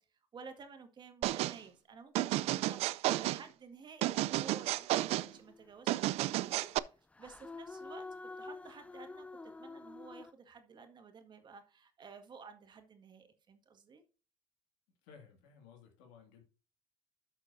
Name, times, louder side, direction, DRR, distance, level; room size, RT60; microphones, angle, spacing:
voice 1, 0.0-8.1 8.4-14.0, right 5 dB, 40° right, 1.8 m, -53 dB
sound 1, 1.2-1.6 2.2-3.4 4.0-5.3 5.9-6.8, right 16 dB, 70° right, 0.4 m, -32 dB
sound 2, 5.0-5.7 7.2-10.3, left 3 dB, 10° left, 0.3 m, -48 dB
voice 2, 15.0-16.4, left 6 dB, 85° left, 2.2 m, -57 dB
12.0 x 6.3 x 2.6 m
supercardioid pair, 90°, 11 cm